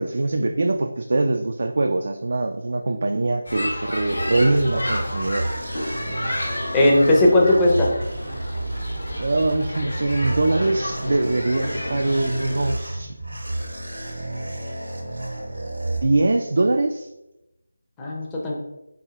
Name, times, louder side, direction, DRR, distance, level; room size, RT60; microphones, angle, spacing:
voice 1, 0.0-5.5 9.2-13.2 16.0-17.1, right 2 dB, 55° right, 5 dB, 0.3 m, -23 dB
sound 1, 3.4-12.7, left 1 dB, 75° left, 1.5 m, -31 dB
sound 2, 3.7-16.6, right 2 dB, 90° right, 1.2 m, -31 dB
voice 2, 6.7-7.9 18.0-18.6, left 1 dB, 10° left, -3 dB, 0.6 m, -17 dB
4.7 x 2.7 x 3.6 m, 0.90 s
figure-of-eight pair, 170°, 0 cm